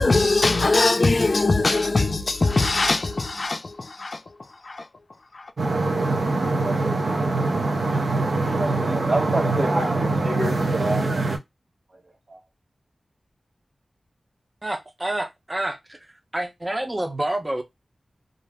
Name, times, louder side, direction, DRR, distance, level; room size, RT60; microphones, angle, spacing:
voice 1, 0.0-4.9 5.3-5.5, left 3 dB, 60° left, 0.4 m, -22 dB
sound 1, 5.6-11.4, right 2 dB, 80° right, 0.5 m, -23 dB
voice 2, 8.8-11.0 12.3-12.4, right 2 dB, 60° right, 1.2 m, -27 dB
voice 3, 14.6-16.0 16.3-17.6, right 1 dB, 30° right, 0.6 m, -28 dB
2.4 x 2.0 x 3.3 m
cardioid pair, 45°, 0 cm